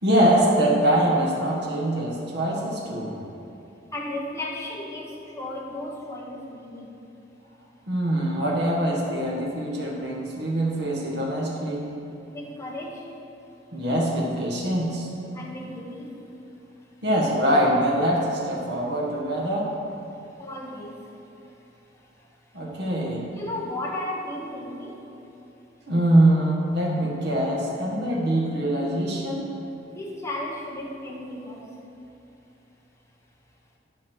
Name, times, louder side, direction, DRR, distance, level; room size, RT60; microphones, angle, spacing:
voice 1, 0.0-3.2 7.9-11.8 13.7-15.1 17.0-19.7 22.5-23.3 25.9-29.4, right 1 dB, 60° right, -3 dB, 1.5 m, -23 dB
voice 2, 3.9-5.1 5.4-6.9 12.3-13.0 15.3-16.1 20.4-21.0 23.3-24.9 29.9-31.7, left 1 dB, 15° left, -3 dB, 1.2 m, -34 dB
10.5 x 4.2 x 6.3 m, 2.8 s
head